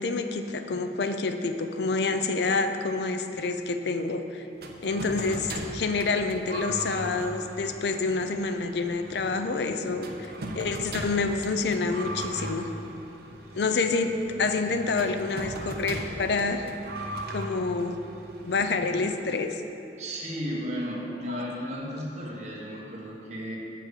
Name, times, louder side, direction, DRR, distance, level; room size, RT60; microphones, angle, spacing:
voice 1, 0.0-4.5 4.8-12.7 13.6-14.1 14.4-16.7 17.3-17.9 18.4-19.6, left 3 dB, 70° left, 8 dB, 0.5 m, -28 dB
sound 1, 4.6-19.3, right 1 dB, 60° right, 0.7 m, -39 dB
voice 2, 20.0-23.6, equal, 40° right, -4 dB, 1.5 m, -34 dB
7.6 x 4.9 x 6.6 m, 3.0 s
head